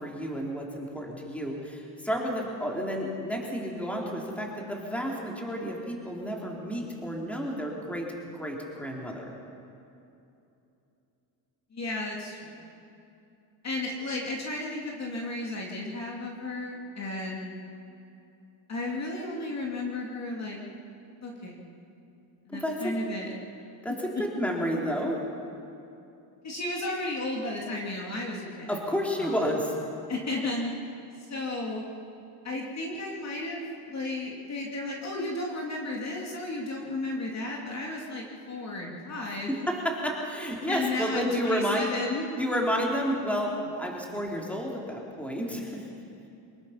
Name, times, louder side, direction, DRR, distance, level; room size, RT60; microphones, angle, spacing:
voice 1, 0.0-8.1 8.3-9.3 22.5-22.9 23.8-25.2 28.7-29.8 39.5-42.0 42.4-45.9, equal, 5° left, -1 dB, 3.2 m, -31 dB
voice 2, 11.7-12.7 13.6-17.6 18.7-20.6 21.2-21.7 22.5-23.3 26.4-28.7 29.2-29.6 30.1-30.7 31.3-31.8 32.4-39.5 40.7-42.3, left 2 dB, 35° left, -1 dB, 2.6 m, -33 dB
24.5 x 21.0 x 5.8 m, 2.7 s
cardioid pair, 135°, 48 cm